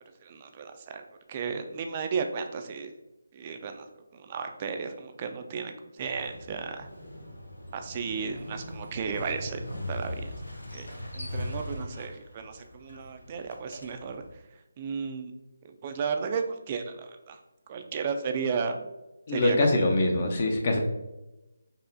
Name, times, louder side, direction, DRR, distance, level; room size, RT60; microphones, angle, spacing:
voice 1, 0.2-1.0 1.3-2.9 3.3-6.9 7.7-9.6 9.9-10.3 10.7-10.9 11.1-14.2 14.8-15.3 15.6-17.4 17.7-18.9 19.3-19.6, right 5 dB, 30° right, 6 dB, 0.3 m, -34 dB
Motorcycle, 6.0-14.3, left 1 dB, 85° left, 0.9 m, -40 dB
voice 2, 19.3-20.8, left 2 dB, 40° left, 2 dB, 0.5 m, -24 dB
5.3 x 2.0 x 2.6 m, 1.0 s
figure-of-eight pair, 155°, 0 cm